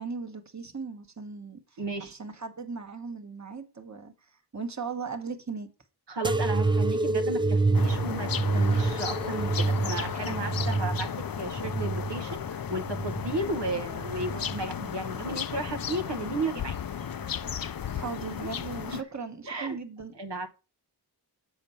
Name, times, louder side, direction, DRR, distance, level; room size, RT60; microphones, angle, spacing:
voice 1, 0.0-5.7 17.9-20.1, right 5 dB, 40° right, 1.2 m, -38 dB
voice 2, 1.8-2.2 6.1-11.1 11.4-16.8 18.9-19.0 19.4-19.8 20.2-20.5, right 2 dB, 85° right, 1.0 m, -34 dB
sound 1, 6.2-13.5 14.0-14.8 15.5-16.0 17.0-17.1, right 3 dB, 10° right, 0.4 m, -28 dB
sound 2, 7.7-19.0, left 8 dB, 55° left, 0.5 m, -35 dB
7.0 x 4.4 x 5.4 m
wide cardioid pair, 40°, 41 cm